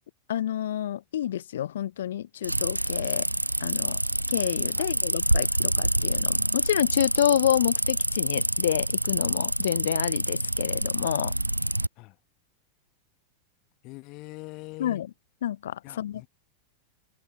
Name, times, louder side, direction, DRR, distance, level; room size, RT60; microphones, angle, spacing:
voice 1, 0.3-3.3 3.6-4.0 4.3-11.3 14.8-15.1 15.4-16.3, left 11 dB, 60° left, 0.5 m, -28 dB
sound 1, 2.4-11.9, right 1 dB, 85° right, 0.5 m, -27 dB
voice 2, 13.8-15.0 15.8-16.3, left 24 dB, 40° left, 1.7 m, -43 dB
figure-of-eight pair, 90°, 0 cm